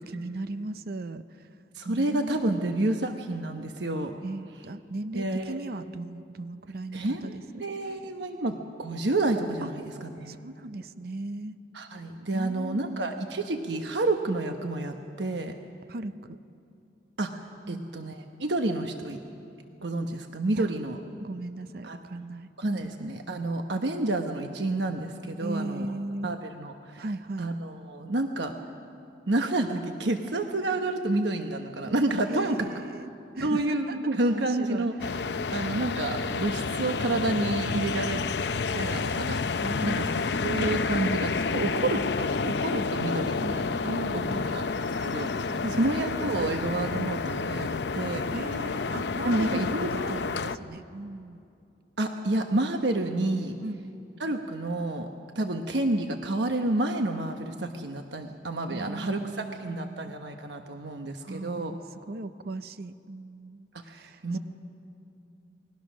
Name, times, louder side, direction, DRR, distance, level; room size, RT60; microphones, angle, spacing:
voice 1, 0.0-1.5 1.8-3.1 4.2-8.0 9.6-9.7 10.3-11.6 12.3-13.1 15.9-16.4 17.6-17.9 20.5-20.8 21.2-22.5 25.4-26.4 27.0-27.5 32.3-34.0 34.3-35.5 39.6-40.6 43.8-44.6 45.5-46.1 46.4-46.6 48.3-51.4 53.6-53.8 58.7-60.1 61.2-61.8 62.1-64.4, right 2 dB, 60° right, 12 dB, 0.6 m, -38 dB
voice 2, 1.7-4.1 5.1-5.6 6.9-7.3 7.6-10.3 11.7-15.5 17.2-17.3 17.7-19.2 19.8-21.0 21.8-22.0 22.6-25.9 26.2-27.0 27.4-28.5 29.3-32.7 33.4-35.0 35.5-38.2 38.7-39.4 39.8-40.1 40.4-44.2 44.5-44.6 45.0-48.2 49.2-50.1 50.4-50.5 52.0-53.5 54.2-55.1 55.3-61.7 63.9-64.4, right 2 dB, 80° right, 5 dB, 1.1 m, -29 dB
sound 1, 35.0-50.6, left 4 dB, 70° left, 0.6 m, -30 dB
28.0 x 21.0 x 6.2 m, 2.6 s
head